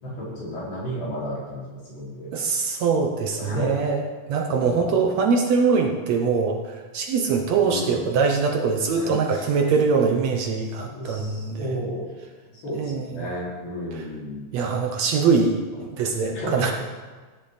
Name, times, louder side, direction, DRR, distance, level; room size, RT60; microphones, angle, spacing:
voice 1, 0.0-2.3 3.4-3.8 4.5-5.0 7.6-8.0 8.9-9.5 10.8-12.0 12.5-14.5 16.3-16.7, equal, 85° left, -8 dB, 6.8 m, -32 dB
voice 2, 2.3-4.0 4.3-11.8 12.8-13.3 13.9-14.0 14.5-16.7, right 5 dB, 70° right, 3 dB, 1.7 m, -23 dB
17.0 x 9.7 x 4.2 m, 1.4 s
omnidirectional pair, 4.1 m